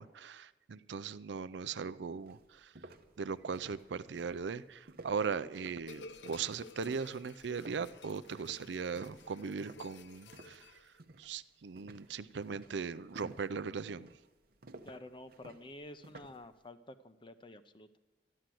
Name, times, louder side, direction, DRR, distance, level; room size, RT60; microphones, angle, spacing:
voice 1, 0.0-2.7 3.2-10.8 11.2-14.1, right 5 dB, 85° right, 16 dB, 0.5 m, -39 dB
sound 1, 1.8-1.9 2.3-10.7 11.0-11.4 11.8-16.5, right 2 dB, 60° right, 0.8 m, -54 dB
sound 2, 5.9-11.0, left 2 dB, 90° left, 0.6 m, -53 dB
voice 2, 14.8-18.0, left 1 dB, 30° left, 11 dB, 0.7 m, -50 dB
12.5 x 11.5 x 7.7 m, 1.1 s
head